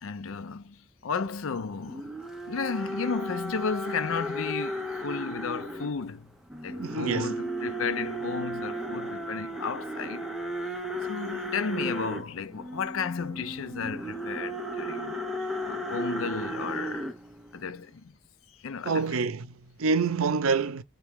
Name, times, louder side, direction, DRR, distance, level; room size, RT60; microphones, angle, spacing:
voice 1, 0.0-2.1 2.5-6.3 6.6-10.3 11.1-15.2 15.6-17.1 17.5-18.1 18.6-19.1, left 5 dB, 75° left, 0.5 m, -33 dB
sound 1, 1.8-5.9 6.5-17.6, right 1 dB, ahead, 0.6 m, -35 dB
voice 2, 6.8-7.4 18.8-20.8, right 4 dB, 80° right, 0.6 m, -27 dB
3.6 x 3.3 x 3.5 m
head